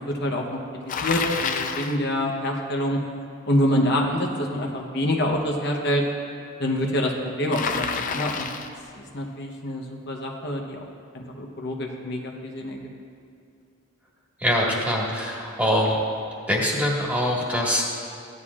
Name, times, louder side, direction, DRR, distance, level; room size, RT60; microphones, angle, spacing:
voice 1, 0.1-0.6 0.9-3.0 3.4-6.0 6.6-8.5 9.0-10.8 11.1-12.8, left 1 dB, 55° left, 1 dB, 0.9 m, -26 dB
Bicycle, 0.9-2.0 7.5-8.8, left 5 dB, 40° left, 0.5 m, -28 dB
voice 2, 14.4-16.0 16.5-17.8, equal, 10° right, -4 dB, 1.6 m, -23 dB
15.5 x 10.5 x 2.4 m, 2.4 s
head